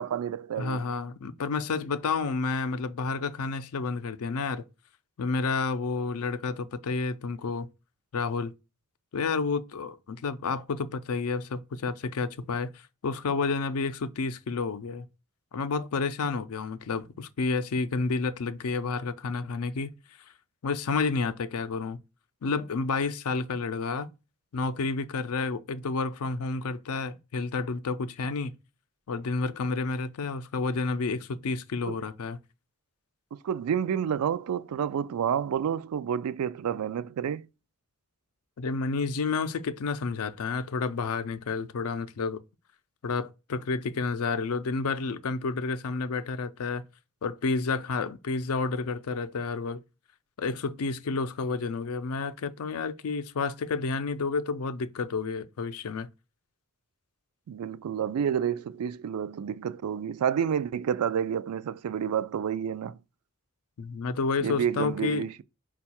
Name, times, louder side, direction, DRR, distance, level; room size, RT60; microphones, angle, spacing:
voice 1, 0.0-0.9 31.9-32.0 33.3-37.4 57.5-63.0 64.4-65.4, right 8 dB, 90° right, 0.3 m, -29 dB
voice 2, 0.6-4.6 5.2-7.7 8.1-8.5 9.1-12.7 13.0-15.1 15.5-19.9 20.6-22.0 22.4-24.1 24.5-28.5 29.1-32.4 38.6-42.4 43.0-46.8 47.2-49.8 50.4-56.1 63.8-65.3, left 4 dB, 80° left, 0.4 m, -30 dB
4.5 x 2.3 x 4.2 m
head